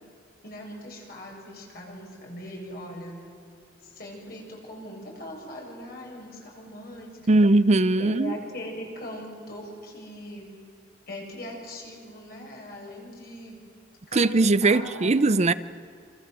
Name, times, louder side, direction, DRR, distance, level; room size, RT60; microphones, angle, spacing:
voice 1, 0.4-3.2 3.8-7.4 8.0-10.5 11.1-13.6 14.1-15.4, left 1 dB, 55° left, 7.9 m, -40 dB
voice 2, 7.3-8.3 14.1-15.5, right 2 dB, 40° right, 0.6 m, -20 dB
28.0 x 26.0 x 7.8 m
head